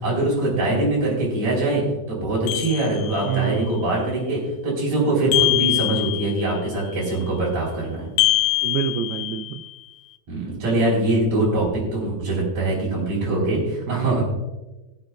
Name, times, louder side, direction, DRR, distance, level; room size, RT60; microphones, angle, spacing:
voice 1, 0.0-1.8 2.1-8.1 10.3-14.2, right 2 dB, 40° right, -7 dB, 4.6 m, -23 dB
sound 1, 2.5-3.5 5.3-6.6 8.2-9.7, left 19 dB, 80° left, 2.4 m, -23 dB
voice 2, 3.3-3.8 8.6-9.6 13.9-14.2, right 8 dB, 90° right, 8 dB, 2.2 m, -27 dB
22.5 x 7.8 x 2.3 m, 1.1 s
omnidirectional pair, 5.1 m